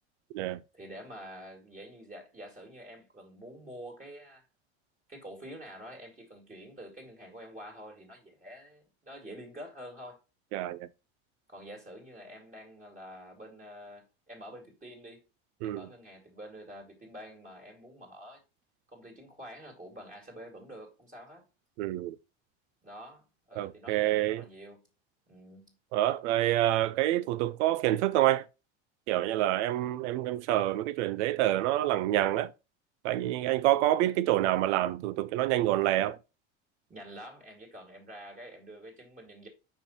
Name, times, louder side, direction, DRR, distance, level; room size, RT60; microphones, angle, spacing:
voice 1, 0.7-4.4 5.1-10.2 11.5-15.2 15.6-18.4 18.9-21.5 22.8-24.8 25.3-25.7 36.9-39.5, equal, 20° right, 2.3 m, -47 dB
voice 2, 10.5-10.9 15.6-15.9 21.8-22.2 23.6-24.4 25.9-28.4 29.1-32.5 33.0-36.2, right 14 dB, 80° right, 0.6 m, -27 dB
5.7 x 4.5 x 4.2 m
supercardioid pair, 100°, 35 cm